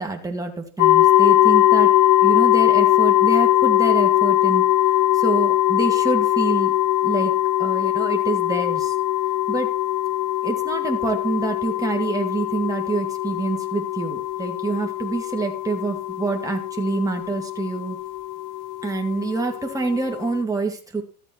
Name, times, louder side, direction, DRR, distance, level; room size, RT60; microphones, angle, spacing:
voice 1, 0.0-1.9 2.2-4.6 5.1-6.7 7.0-7.3 7.6-8.9 9.5-9.7 10.4-18.0 18.8-21.0, right 3 dB, 5° right, 2 dB, 2.2 m, -26 dB
sound 1, 0.8-20.4, left 14 dB, 45° left, 0.8 m, -21 dB
13.5 x 8.2 x 4.4 m, 0.39 s
hypercardioid pair, 95°, 45 cm